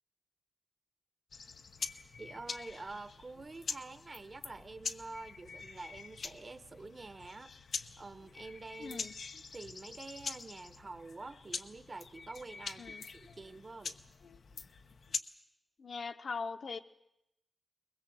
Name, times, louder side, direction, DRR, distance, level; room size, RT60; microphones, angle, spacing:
sound 1, 1.3-15.2, left 5 dB, 90° left, 1.1 m, -44 dB
voice 1, 2.2-7.5 8.0-9.0 9.3-14.0, right 3 dB, 35° right, 12 dB, 0.9 m, -47 dB
voice 2, 8.8-9.1 12.8-13.0 15.8-16.8, left 5 dB, 65° left, 8 dB, 1.2 m, -40 dB
22.5 x 21.0 x 7.8 m, 0.81 s
wide cardioid pair, 150°, 0 cm